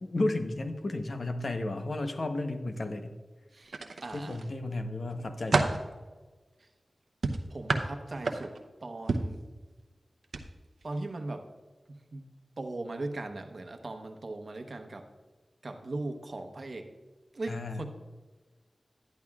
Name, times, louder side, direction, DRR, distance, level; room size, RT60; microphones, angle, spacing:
voice 1, 0.0-3.1 4.1-5.8 17.5-17.8, left 2 dB, 65° left, 6 dB, 0.9 m, -33 dB
sound 1, 3.7-4.5 5.0-5.9 7.2-8.7 9.1-9.4 10.2-10.4 10.8-11.0, right 3 dB, 80° right, 0.7 m, -30 dB
voice 2, 4.0-4.4 7.5-8.5 8.8-9.4 10.8-11.4 11.9-12.2 12.6-15.1 15.6-16.9 17.3-17.9, right 2 dB, 60° right, 5 dB, 1.0 m, -38 dB
11.5 x 10.5 x 2.4 m, 1.3 s
cardioid pair, 50°, 0 cm